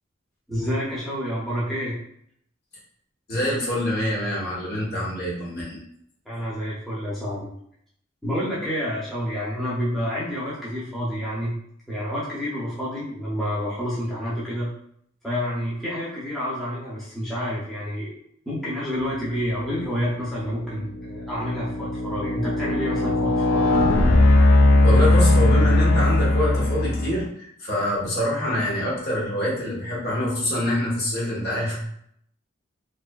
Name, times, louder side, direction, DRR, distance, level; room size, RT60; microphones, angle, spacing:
voice 1, 0.5-2.0 6.3-7.5 8.2-11.5 11.9-14.7 15.2-18.2 18.5-23.7, equal, ahead, -9 dB, 0.5 m, -29 dB
voice 2, 3.3-5.8 24.8-31.8, left 1 dB, 50° left, -5 dB, 0.9 m, -25 dB
sound 1, 19.6-19.8 20.4-27.3, left 2 dB, 75° left, 0.3 m, -19 dB
2.6 x 2.4 x 2.2 m, 0.69 s
head